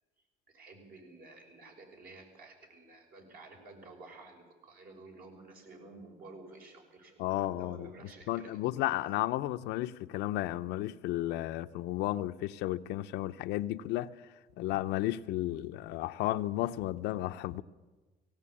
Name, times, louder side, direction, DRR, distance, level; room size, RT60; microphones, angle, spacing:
voice 1, 0.5-8.7, right 2 dB, 60° right, 6.2 m, -52 dB
voice 2, 7.2-7.9 8.3-14.1 14.6-17.6, left 15 dB, 90° left, 0.7 m, -33 dB
17.5 x 17.5 x 8.6 m
cardioid pair, 110°, 17 cm